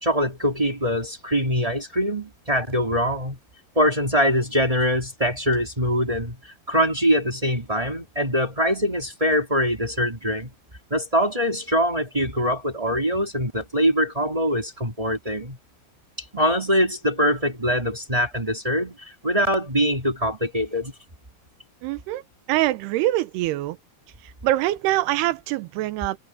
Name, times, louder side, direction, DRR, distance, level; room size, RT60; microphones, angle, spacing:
voice 1, 0.0-3.4 3.7-10.5 10.9-15.6 16.3-20.9, equal, 15° right, 1.5 m, -23 dB
voice 2, 21.8-22.2 22.5-23.8 24.4-26.2, right 16 dB, 80° right, 2.8 m, -24 dB
omnidirectional pair, 4.8 m